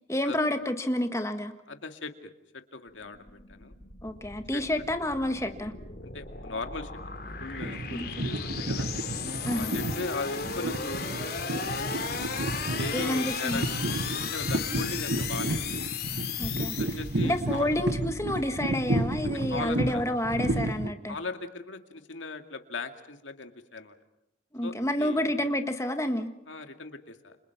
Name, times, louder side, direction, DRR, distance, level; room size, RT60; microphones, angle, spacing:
voice 1, 0.1-1.5 4.0-5.7 7.9-8.3 9.4-9.7 12.9-13.7 16.4-16.8 17.2-21.2 24.5-26.3, left 1 dB, 15° left, 7 dB, 1.6 m, -29 dB
voice 2, 1.7-3.7 4.5-4.6 6.1-6.9 7.4-8.9 9.5-11.1 11.6-15.8 16.6-17.7 18.7-18.9 19.5-20.0 21.1-23.9 24.6-25.2 26.5-27.4, left 3 dB, 85° left, 6 dB, 2.3 m, -39 dB
sound 1, 2.9-17.5, left 6 dB, 55° left, 3.4 m, -36 dB
sound 2, 7.4-20.9, right 1 dB, 65° right, 1.4 m, -32 dB
30.0 x 26.5 x 5.9 m, 0.82 s
head